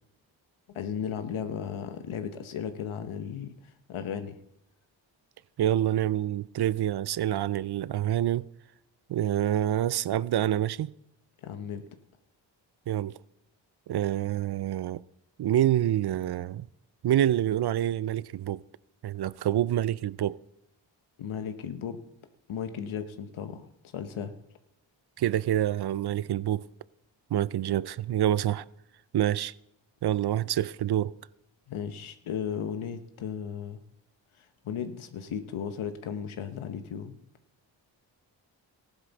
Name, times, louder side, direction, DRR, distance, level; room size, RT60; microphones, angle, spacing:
voice 1, 0.7-4.4 11.4-11.9 21.2-22.0 22.5-24.3 31.7-33.8 34.3-37.2, left 7 dB, 85° left, 1.0 m, -35 dB
voice 2, 5.6-8.5 9.1-10.9 12.9-13.1 13.9-15.0 15.4-16.7 17.0-18.6 19.0-20.4 25.2-26.7 27.3-28.6 29.1-29.5 30.0-31.1, right 12 dB, 55° right, 0.5 m, -27 dB
15.0 x 11.5 x 4.0 m
cardioid pair, 55°, 47 cm